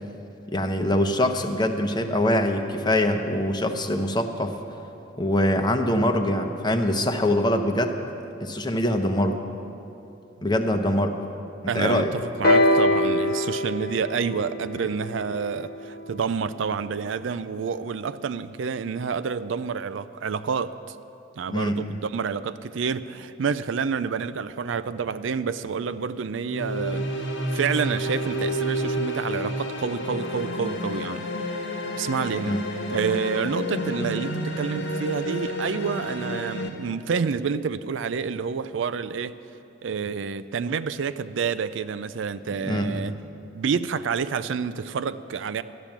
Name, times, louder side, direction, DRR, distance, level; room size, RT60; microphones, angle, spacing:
voice 1, 0.5-4.6 5.2-8.0 8.4-9.4 10.4-11.2 11.6-12.1 21.5-21.8 32.4-32.6 42.6-43.0, left 1 dB, 20° left, 6 dB, 0.8 m, -23 dB
voice 2, 11.7-21.0 21.4-27.1 27.5-32.6 32.9-39.4 39.8-43.1 43.5-45.6, right 6 dB, 75° right, 13 dB, 0.4 m, -28 dB
sound 1, 12.4-16.3 17.2-17.3, left 1 dB, 55° left, 1.0 m, -23 dB
sound 2, 26.4-36.7, equal, 75° left, 1.5 m, -30 dB
13.0 x 10.5 x 7.2 m, 2.8 s
head